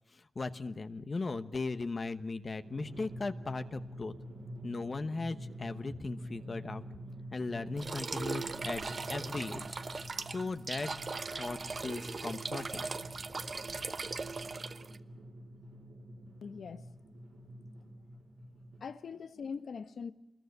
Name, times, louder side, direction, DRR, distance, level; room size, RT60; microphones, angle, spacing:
voice 1, 0.1-4.1 4.6-6.8 7.3-8.8 9.1-9.8 10.3-10.9 11.3-12.9, left 3 dB, 40° left, 1.1 m, -38 dB
Drum, 2.6-18.8, equal, 90° right, 5.0 m, -47 dB
sound 1, 7.8-15.0, right 4 dB, 40° right, 1.0 m, -39 dB
voice 2, 16.4-16.9 18.8-20.1, left 5 dB, 90° left, 1.4 m, -42 dB
27.0 x 21.5 x 8.1 m
wide cardioid pair, 160°, 0 cm